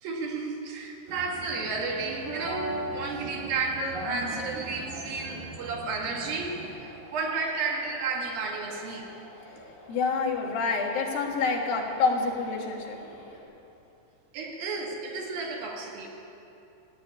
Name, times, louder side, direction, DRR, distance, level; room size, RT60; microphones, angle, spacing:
voice 1, 0.0-9.1 14.3-16.1, right 4 dB, 90° right, 0 dB, 3.6 m, -32 dB
sound 1, 1.1-6.7, right 1 dB, 70° right, 4.8 m, -38 dB
sound 2, 1.5-13.4, left 1 dB, 50° left, 4.4 m, -50 dB
voice 2, 9.9-13.0, left 4 dB, 90° left, 1 dB, 3.5 m, -27 dB
15.0 x 10.0 x 9.4 m, 2.7 s
omnidirectional pair, 4.0 m